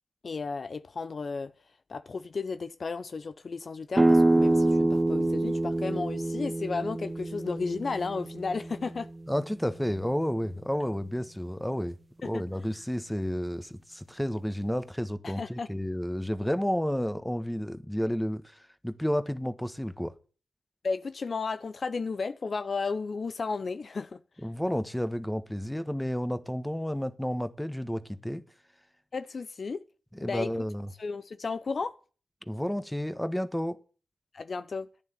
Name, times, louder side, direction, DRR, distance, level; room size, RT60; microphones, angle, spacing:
voice 1, 0.2-1.5 1.9-9.1 12.2-12.4 15.2-15.7 20.8-24.2 29.1-29.9 30.2-30.5 31.0-32.0 34.3-34.9, left 4 dB, 55° left, 0.7 m, -33 dB
sound 1, 3.9-9.5, right 2 dB, 20° right, 0.7 m, -26 dB
voice 2, 9.3-12.0 12.2-20.1 24.4-28.4 30.1-30.9 32.5-33.8, equal, 5° left, 1.4 m, -31 dB
11.0 x 9.4 x 9.0 m
cardioid pair, 50°, 0 cm